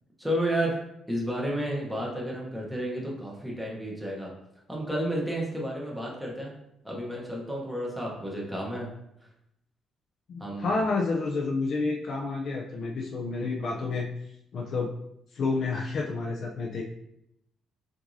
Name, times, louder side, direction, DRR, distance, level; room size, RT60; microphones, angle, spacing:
voice 1, 0.2-0.8 1.1-4.3 4.7-6.5 6.8-8.9 10.4-10.8, right 1 dB, ahead, -3 dB, 0.9 m, -31 dB
voice 2, 10.3-14.1 14.5-14.9 15.3-16.8, left 3 dB, 45° left, 0 dB, 0.4 m, -29 dB
5.8 x 2.6 x 2.6 m, 0.79 s
cardioid pair, 175°, 0 cm